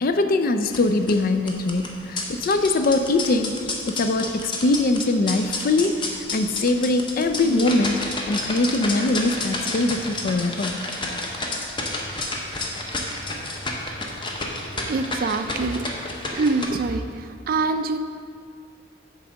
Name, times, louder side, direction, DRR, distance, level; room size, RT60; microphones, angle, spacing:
voice 1, 0.0-3.5 3.8-6.0 6.3-10.8, left 2 dB, 45° left, 9 dB, 0.4 m, -22 dB
sound 1, 0.6-16.6, left 2 dB, 25° left, 0.8 m, -31 dB
voice 2, 14.7-15.9 16.3-18.0, right 3 dB, 45° right, 9 dB, 0.4 m, -25 dB
8.7 x 3.4 x 6.3 m, 2.1 s
head